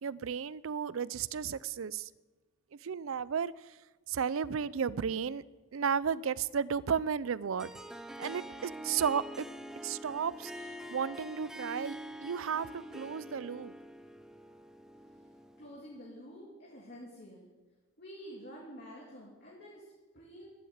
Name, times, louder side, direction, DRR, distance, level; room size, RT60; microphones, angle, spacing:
voice 1, 0.0-2.1 2.8-3.5 4.1-5.4 5.7-7.7 8.2-9.5 9.8-10.5 10.9-13.7, right 7 dB, 70° right, 20 dB, 0.4 m, -33 dB
Harp, 7.6-16.0, right 1 dB, ahead, 0.5 m, -45 dB
voice 2, 15.6-17.5 18.0-20.5, equal, 50° left, -4 dB, 2.7 m, -49 dB
12.5 x 11.0 x 8.0 m, 1.3 s
head